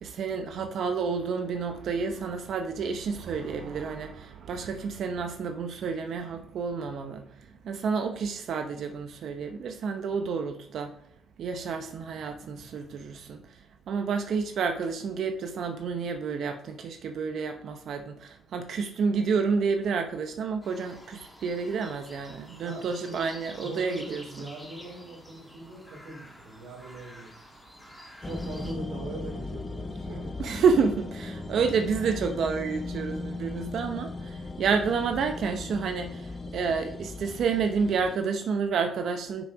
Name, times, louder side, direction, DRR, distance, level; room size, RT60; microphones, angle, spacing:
voice 1, 0.0-7.3 7.6-10.9 11.4-13.6 13.9-24.2 30.1-39.4, right 5 dB, 65° right, 0.8 m, -29 dB
sound 1, 20.6-28.7, left 1 dB, 5° left, 1.9 m, -49 dB
voice 2, 22.6-23.3 23.6-27.3 28.2-30.5, right 2 dB, 85° right, 3.0 m, -41 dB
sound 2, 28.2-38.2, left 2 dB, 25° left, 0.7 m, -37 dB
6.3 x 6.3 x 4.9 m
cardioid pair, 90°, 0 cm